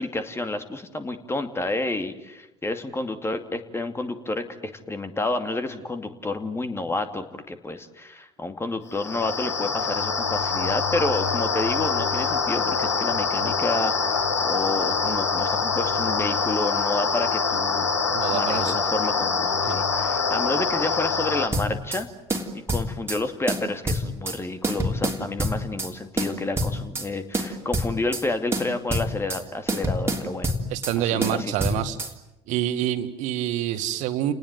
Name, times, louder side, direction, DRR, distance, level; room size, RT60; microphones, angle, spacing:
voice 1, 0.0-17.9 18.3-22.1 22.5-30.5 31.0-31.5, left 2 dB, 15° left, 8 dB, 2.5 m, -30 dB
sound 1, 8.9-21.5, left 5 dB, 85° left, 1.8 m, -25 dB
voice 2, 18.1-18.8 19.7-19.8 30.7-32.0 32.5-34.3, right 12 dB, 55° right, 11 dB, 1.9 m, -27 dB
sound 2, 21.5-22.0 22.3-23.2 23.5-24.4 24.6-25.9 26.2-27.1 27.3-28.2 28.5-29.4 29.7-31.0 31.2-32.1, right 1 dB, 20° right, 3.3 m, -26 dB
30.0 x 19.5 x 9.3 m, 0.93 s
figure-of-eight pair, 60°, 15 cm